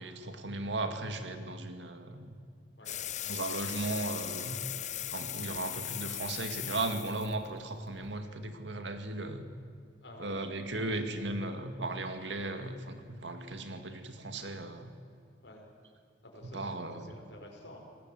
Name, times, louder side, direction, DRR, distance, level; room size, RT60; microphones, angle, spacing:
voice 1, 0.0-2.4 3.3-4.8 5.1-9.4 10.2-14.9 16.5-17.1, right 2 dB, 85° right, 7 dB, 2.1 m, -36 dB
sound 1, 2.9-8.2, left 11 dB, 45° left, 0.7 m, -39 dB
voice 2, 10.0-10.9 11.4-11.5 15.4-15.7 16.2-17.8, left 1 dB, 75° left, 0 dB, 4.9 m, -51 dB
27.0 x 19.0 x 7.8 m, 2.3 s
head